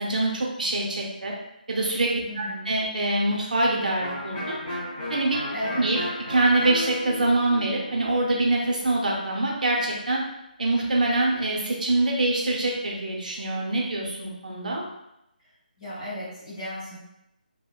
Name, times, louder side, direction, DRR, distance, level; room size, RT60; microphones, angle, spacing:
voice 1, 0.0-1.3 1.7-4.6 5.1-5.4 5.8-6.0 6.3-10.2 10.6-14.8, right 2 dB, 55° right, -2 dB, 0.6 m, -24 dB
voice 2, 2.3-2.7 5.5-5.8 15.8-17.0, equal, 40° left, -7 dB, 1.0 m, -34 dB
Electric guitar, 4.0-9.6, left 1 dB, 15° left, 0.6 m, -35 dB
2.8 x 2.0 x 2.2 m, 0.86 s
hypercardioid pair, 175°, 5 cm